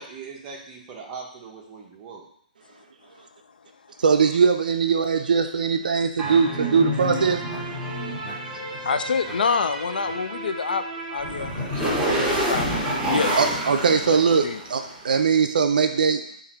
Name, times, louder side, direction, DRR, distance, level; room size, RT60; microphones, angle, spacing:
voice 1, 0.0-2.2, right 5 dB, 25° right, -1 dB, 0.9 m, -40 dB
voice 2, 4.0-7.4 13.4-16.2, right 5 dB, 70° right, 7 dB, 0.5 m, -21 dB
sound 1, 6.2-14.9, right 1 dB, 10° left, 1.7 m, -28 dB
voice 3, 8.9-12.7 13.1-13.4 14.1-14.6, left 5 dB, 75° left, 10 dB, 0.4 m, -27 dB
3.8 x 2.6 x 4.3 m, 0.65 s
hypercardioid pair, 145°, 5 cm